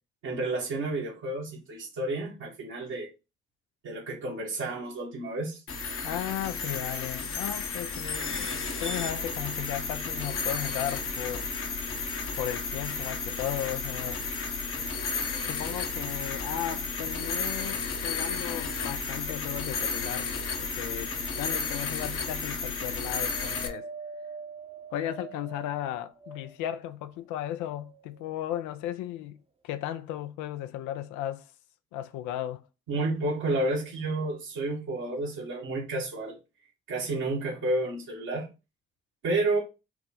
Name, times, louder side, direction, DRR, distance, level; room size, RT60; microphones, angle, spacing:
voice 1, 0.2-3.1 3.8-5.6 32.9-36.4 36.9-38.5 39.2-39.6, right 2 dB, 80° right, 1.4 m, -30 dB
sound 1, 5.7-23.7, left 4 dB, 45° left, 0.9 m, -33 dB
voice 2, 6.0-8.5 8.8-11.5 12.4-14.2 15.4-20.3 20.6-23.9 24.9-31.5 31.9-32.6, left 12 dB, 75° left, 0.5 m, -35 dB
Wind, 23.3-26.8 27.4-28.4 29.2-29.3, right 5 dB, 20° right, 0.7 m, -44 dB
4.5 x 2.1 x 3.7 m
hypercardioid pair, 40°, 29 cm